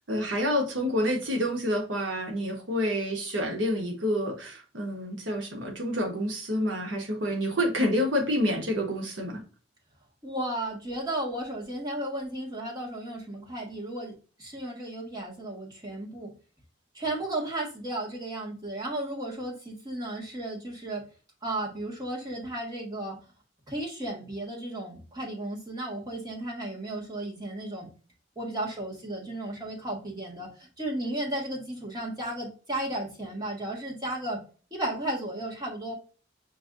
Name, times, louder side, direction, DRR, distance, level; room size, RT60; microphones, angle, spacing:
voice 1, 0.1-9.4, equal, 80° right, 2 dB, 1.1 m, -28 dB
voice 2, 10.2-14.1 14.4-16.3 16.9-21.1 21.4-23.2 23.7-27.9 28.3-34.4 34.7-35.9, right 1 dB, 20° right, -2 dB, 1.4 m, -34 dB
5.9 x 2.6 x 2.5 m, 0.36 s
head